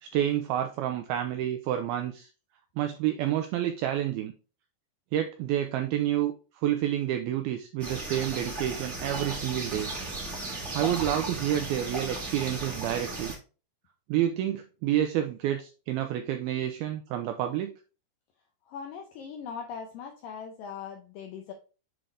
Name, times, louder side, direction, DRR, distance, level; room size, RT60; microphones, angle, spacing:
voice 1, 0.0-2.3 2.8-4.3 5.1-6.3 6.6-9.9 10.7-13.3 14.1-17.7, right 11 dB, 90° right, 2.1 m, -29 dB
sound 1, 7.8-13.3, right 2 dB, 60° right, 0.7 m, -36 dB
voice 2, 18.7-21.5, left 6 dB, 85° left, 2.0 m, -40 dB
7.8 x 3.8 x 3.3 m
omnidirectional pair, 4.9 m